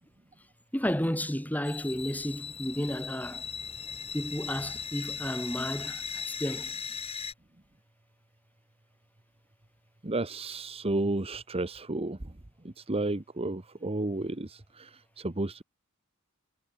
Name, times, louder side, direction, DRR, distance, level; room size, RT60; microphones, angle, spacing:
voice 1, 0.7-3.4 4.1-6.7, equal, 10° left, 5.6 m, -32 dB
sound 1, 1.6-7.3, left 6 dB, 25° left, 3.7 m, -38 dB
voice 2, 10.0-12.3 12.6-15.6, right 2 dB, 30° right, 1.1 m, -32 dB
head